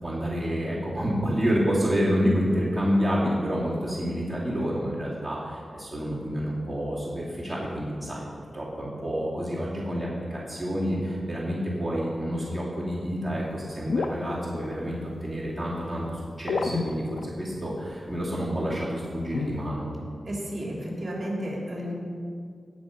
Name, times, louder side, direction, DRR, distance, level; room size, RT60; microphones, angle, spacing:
voice 1, 0.0-8.3 8.5-19.9, equal, ahead, -7 dB, 2.6 m, -28 dB
sound 1, 13.4-15.1 16.5-17.5 18.0-18.1 19.1-19.7, left 4 dB, 90° left, 0.6 m, -30 dB
voice 2, 20.2-21.9, equal, 30° right, -3 dB, 3.1 m, -32 dB
17.5 x 6.1 x 5.2 m, 2.2 s
wide cardioid pair, 95°, 0 cm